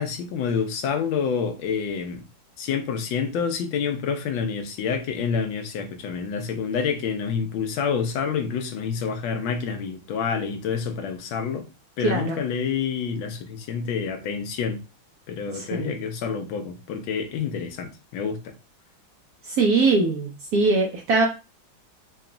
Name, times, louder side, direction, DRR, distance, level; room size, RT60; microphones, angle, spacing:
voice 1, 0.0-2.2 2.6-11.6 12.0-14.8 15.3-18.5, left 6 dB, 75° left, 1.4 m, -28 dB
voice 2, 12.0-12.4 15.5-15.9 19.5-21.3, right 3 dB, 70° right, 0.9 m, -22 dB
3.9 x 2.3 x 3.7 m
omnidirectional pair, 2.3 m